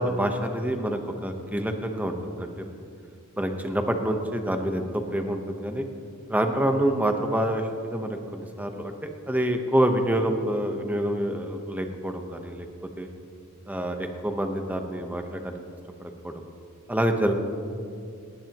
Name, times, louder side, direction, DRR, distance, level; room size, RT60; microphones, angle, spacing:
voice 1, 0.0-2.6 3.4-5.8 6.3-12.7 13.0-13.1 13.7-15.6 16.0-16.3 16.9-17.3, right 1 dB, 5° right, 4 dB, 1.0 m, -27 dB
19.5 x 18.5 x 3.0 m, 2.4 s
head